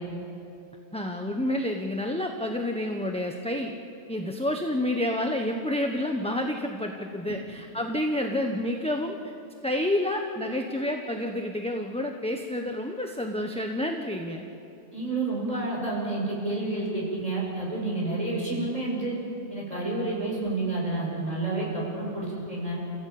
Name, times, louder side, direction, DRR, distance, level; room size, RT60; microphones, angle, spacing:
voice 1, 0.9-3.7 4.1-9.2 9.6-14.5, left 1 dB, 5° left, 3 dB, 1.0 m, -29 dB
voice 2, 14.9-19.2 19.5-22.8, right 2 dB, 25° right, -4 dB, 7.0 m, -29 dB
29.5 x 15.5 x 8.7 m, 2.8 s
omnidirectional pair, 1.4 m